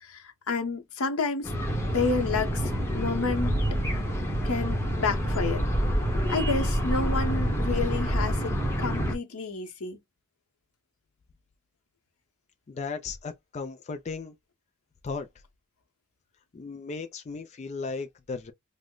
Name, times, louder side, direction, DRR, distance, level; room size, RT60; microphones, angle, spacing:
voice 1, 0.0-1.5 1.9-3.5 4.4-5.6 6.3-8.5 8.8-10.0, left 4 dB, 85° left, 0.8 m, -30 dB
sound 1, 1.4-9.1, equal, 10° left, 0.8 m, -27 dB
voice 2, 12.7-14.3 15.0-15.3 16.5-18.5, left 4 dB, 30° left, 0.3 m, -36 dB
3.0 x 2.0 x 3.6 m
head